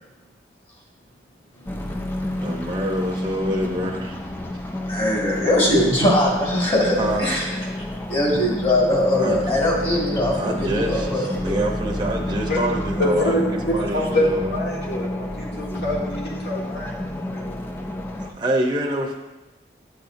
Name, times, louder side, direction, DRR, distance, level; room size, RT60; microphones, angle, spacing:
sound 1, 1.7-18.3, left 1 dB, 10° left, 0.4 m, -30 dB
voice 1, 2.4-4.2 6.9-7.2 9.2-9.4 10.3-13.3 13.7-14.6 18.2-19.2, right 1 dB, 25° right, -1 dB, 0.8 m, -26 dB
voice 2, 4.9-7.5 8.1-11.6, left 1 dB, 30° left, -3 dB, 1.8 m, -21 dB
voice 3, 13.0-17.6, left 1 dB, 65° left, -3 dB, 1.8 m, -25 dB
9.7 x 7.1 x 2.7 m, 1.0 s
head